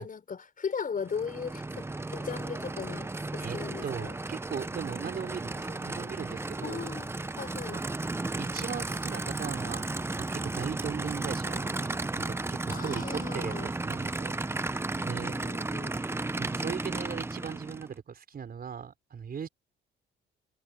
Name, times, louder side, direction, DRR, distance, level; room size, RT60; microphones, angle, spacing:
voice 1, 0.0-4.2 6.6-7.1 7.4-7.8 12.7-13.7 15.0-16.0, left 6 dB, 45° left, 5.7 m, -38 dB
Aircraft / Idling, 1.0-17.9, right 2 dB, 10° right, 0.7 m, -34 dB
voice 2, 3.8-7.0 7.7-8.0 8.3-9.9 10.2-14.4 15.0-15.3 16.4-19.5, right 7 dB, 50° right, 5.0 m, -38 dB
cardioid pair, 90°, 20 cm